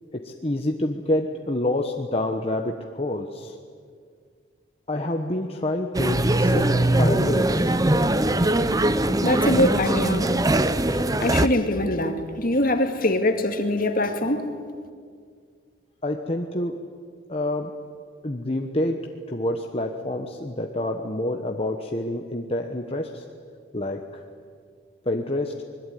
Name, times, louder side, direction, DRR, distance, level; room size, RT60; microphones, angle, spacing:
voice 1, 0.1-3.5 4.9-7.9 16.0-16.8 17.3-17.7 18.2-19.0 19.3-23.2 23.7-24.2 25.0-25.6, left 1 dB, 30° left, 3 dB, 1.2 m, -28 dB
sound 1, 5.9-11.5, right 1 dB, 20° right, 0.7 m, -21 dB
voice 2, 9.2-10.3 11.2-14.5, left 1 dB, 45° left, 6 dB, 2.1 m, -23 dB
26.0 x 21.5 x 9.3 m, 2.1 s
head